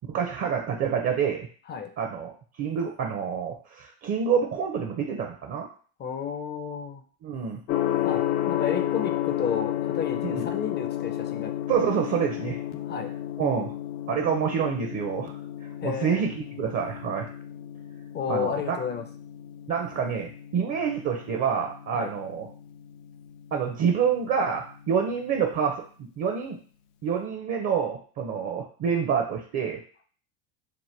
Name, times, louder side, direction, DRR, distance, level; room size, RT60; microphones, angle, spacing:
voice 1, 0.1-1.5 2.0-2.3 2.6-5.7 7.2-7.6 10.2-10.5 11.7-12.6 13.4-13.7 14.1-15.3 15.8-17.3 18.3-18.8 19.7-22.5 23.5-25.8 26.2-26.6 27.0-29.8, right 7 dB, 40° right, 3 dB, 0.5 m, -27 dB
voice 2, 6.0-7.0 8.0-11.5 12.8-13.1 15.8-16.2 18.1-19.0 21.9-22.1, left 6 dB, 25° left, 6 dB, 0.4 m, -32 dB
Gong, 7.7-25.6, left 13 dB, 85° left, 0.5 m, -33 dB
3.0 x 2.1 x 3.2 m, 0.43 s
supercardioid pair, 90°, 42 cm